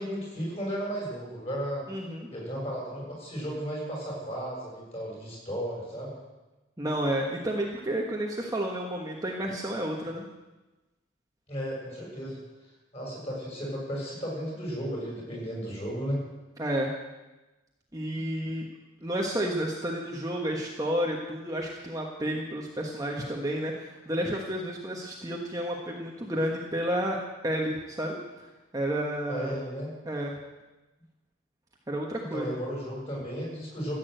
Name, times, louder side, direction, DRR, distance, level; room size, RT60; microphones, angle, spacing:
voice 1, 0.0-1.8 2.3-6.2 11.5-12.4 12.9-16.2 29.3-29.9 32.3-33.9, equal, 30° left, -3 dB, 6.9 m, -34 dB
voice 2, 1.9-2.3 6.8-10.2 16.6-16.9 17.9-18.7 19.0-27.2 27.4-28.2 28.7-29.5 30.0-30.3 31.9-32.6, right 1 dB, 20° right, -1 dB, 1.3 m, -31 dB
15.0 x 8.7 x 7.8 m, 1.1 s
head